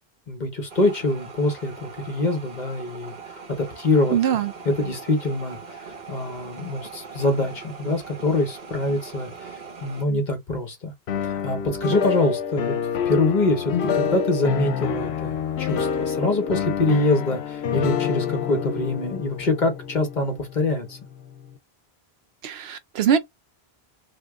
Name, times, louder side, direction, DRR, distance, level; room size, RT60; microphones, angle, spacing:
voice 1, 0.3-3.1 3.5-5.6 6.1-9.3 9.8-10.9 11.2-12.7 13.1-21.0, left 2 dB, 45° left, 1.1 m, -24 dB
sound 1, 0.7-10.0, right 5 dB, 45° right, 1.1 m, -41 dB
voice 2, 4.1-4.5 22.4-23.2, right 8 dB, 75° right, 0.8 m, -22 dB
sound 2, 11.1-21.0, left 8 dB, 85° left, 0.9 m, -27 dB
2.9 x 2.4 x 3.5 m
omnidirectional pair, 1.1 m